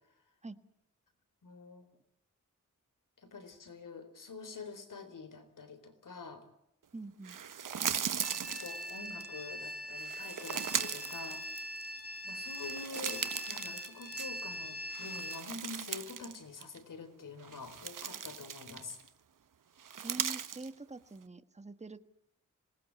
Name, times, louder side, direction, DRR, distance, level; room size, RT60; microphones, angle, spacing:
voice 1, 1.4-1.9 3.2-6.5 8.0-11.5 12.2-19.0, left 4 dB, 75° left, 9 dB, 3.9 m, -47 dB
voice 2, 6.9-7.4 20.0-22.1, right 3 dB, 20° right, 10 dB, 1.5 m, -45 dB
sound 1, 7.2-9.3 10.0-12.0 12.4-14.5 14.9-16.4 16.6-16.8 17.4-19.1 19.8-20.7, right 8 dB, 80° right, 1.2 m, -38 dB
sound 2, 8.2-15.4, equal, 45° left, 2.7 m, -42 dB
26.0 x 20.0 x 8.5 m, 0.80 s
wide cardioid pair, 140°, 32 cm